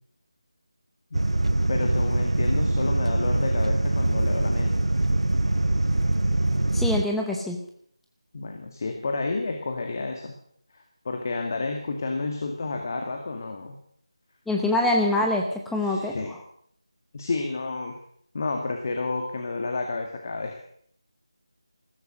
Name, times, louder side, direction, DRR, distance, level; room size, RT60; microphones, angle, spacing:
sound 1, 1.1-7.0, right 2 dB, 85° right, 0.6 m, -23 dB
voice 1, 1.7-4.8 8.3-10.3 10.7-13.8 15.8-16.4 17.1-18.0 18.3-20.6, left 3 dB, 35° left, 4 dB, 1.8 m, -30 dB
voice 2, 6.7-7.6 14.5-16.4, left 2 dB, ahead, 0 dB, 0.9 m, -25 dB
15.0 x 14.0 x 6.4 m, 0.65 s
figure-of-eight pair, 165°, 3 cm